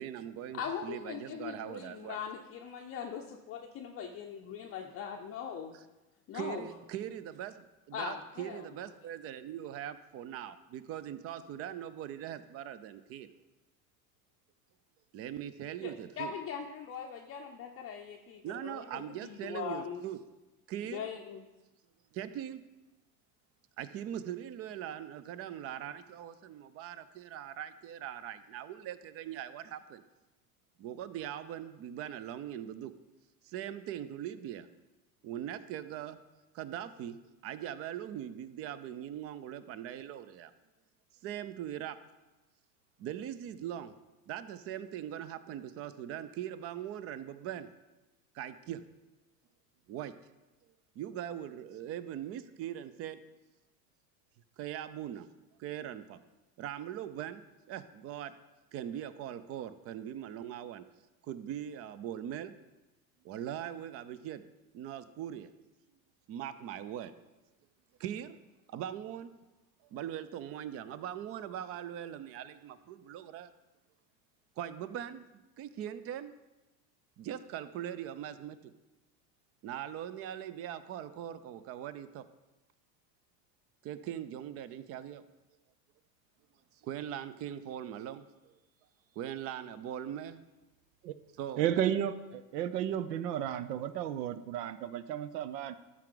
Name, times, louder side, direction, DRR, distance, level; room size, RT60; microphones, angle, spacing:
voice 1, 0.0-2.2 6.3-7.6 7.9-13.3 15.1-16.3 18.4-20.2 20.7-21.1 22.1-22.6 23.8-30.0 30.8-32.9 33.4-34.7 35.2-36.2 36.5-37.2 37.4-40.5 41.2-42.0 43.0-43.9 44.3-47.7 48.3-48.8 49.9-50.2 51.0-53.2 54.6-55.3 55.6-56.2 56.6-58.3 58.7-60.8 61.2-62.5 63.2-64.4 64.7-65.5 66.3-67.1 68.0-68.4 68.7-69.4 69.9-73.5 74.6-75.3 75.6-76.3 77.2-78.7 79.6-82.2 83.8-85.2 86.8-88.5 89.2-90.4 91.4-91.7, right 10 dB, 30° right, 14 dB, 0.4 m, -41 dB
voice 2, 0.5-5.8 6.3-6.6 7.9-8.7 15.8-20.1 20.9-21.4, left 7 dB, 30° left, 1 dB, 0.6 m, -41 dB
voice 3, 91.6-95.8, right 10 dB, 75° right, 14 dB, 0.7 m, -33 dB
12.5 x 4.8 x 3.8 m, 1.1 s
hypercardioid pair, 100°, 49 cm